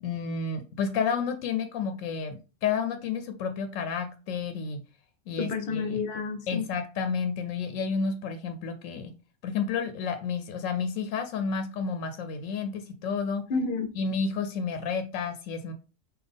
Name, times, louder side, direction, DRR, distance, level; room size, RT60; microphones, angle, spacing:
voice 1, 0.0-4.8 5.3-6.0 6.5-9.1 9.4-13.4 14.0-15.7, left 5 dB, 90° left, 0.9 m, -31 dB
voice 2, 5.4-6.7 13.5-13.9, left 4 dB, 60° left, 0.8 m, -30 dB
3.9 x 2.4 x 3.4 m
omnidirectional pair, 1.3 m